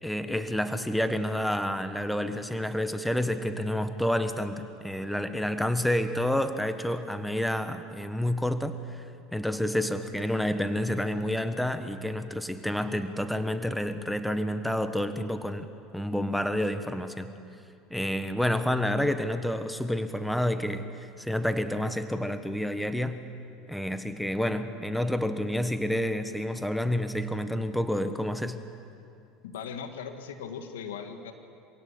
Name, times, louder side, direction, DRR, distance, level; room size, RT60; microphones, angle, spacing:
voice 1, 0.0-15.7 15.9-17.3 17.9-23.2 23.7-28.6, left 1 dB, 5° left, 9 dB, 1.5 m, -29 dB
voice 2, 29.4-31.3, left 6 dB, 85° left, 7 dB, 1.9 m, -38 dB
26.0 x 17.0 x 8.7 m, 2.6 s
hypercardioid pair, 85°, 0 cm